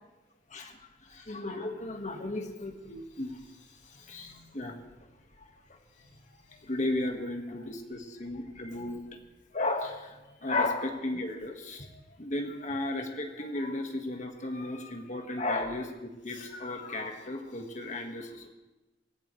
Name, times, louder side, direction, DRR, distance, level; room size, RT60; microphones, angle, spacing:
voice 1, 1.1-3.4 4.1-4.8 6.6-9.0 9.5-11.8 12.2-18.5, left 2 dB, 40° left, 3 dB, 1.7 m, -34 dB
voice 2, 3.1-4.4 6.0-6.7 7.5-7.7 8.7-9.2 10.3-10.5 11.9-12.2 12.6-13.0 13.4-13.5 14.0-14.2 14.5-14.8 16.3-18.5, left 3 dB, 80° left, -3 dB, 3.4 m, -58 dB
25.0 x 15.5 x 3.3 m, 1.1 s
head